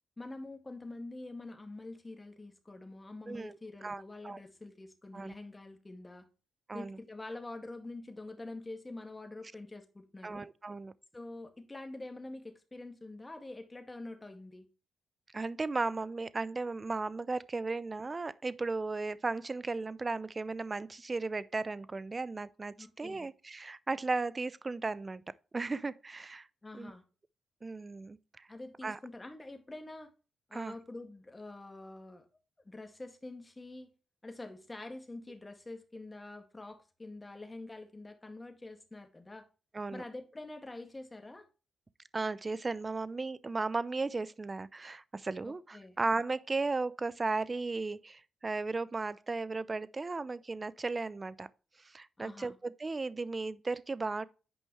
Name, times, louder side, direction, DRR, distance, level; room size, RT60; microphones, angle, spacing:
voice 1, 0.2-6.3 6.7-10.4 11.1-14.7 22.8-23.3 26.6-27.0 28.5-30.1 30.5-32.2 32.6-33.9 34.2-39.5 39.9-41.5 45.4-46.0 52.2-52.6, left 2 dB, 20° left, 2.0 m, -46 dB
voice 2, 3.8-4.4 5.1-5.3 6.7-7.0 10.2-10.9 15.3-25.2 25.5-26.5 26.7-26.9 27.6-28.5 28.8-29.0 30.5-30.7 39.7-40.0 42.1-51.5 51.8-54.3, right 3 dB, 30° right, 0.6 m, -35 dB
9.4 x 5.3 x 3.1 m
cardioid pair, 65°, 0 cm